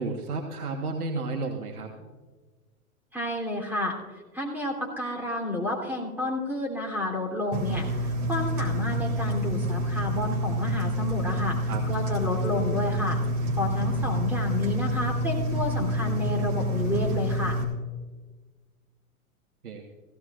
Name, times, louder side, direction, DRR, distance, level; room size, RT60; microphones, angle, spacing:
voice 1, 0.0-2.1 11.7-11.8 19.6-19.8, right 3 dB, 85° right, 2 dB, 1.5 m, -32 dB
voice 2, 3.1-13.2 13.6-17.6, left 2 dB, 5° right, -2 dB, 3.2 m, -30 dB
Engine, 7.5-17.6, equal, 40° right, 3.4 m, -28 dB
16.5 x 16.5 x 2.5 m, 1.3 s
hypercardioid pair, 120°, 43 cm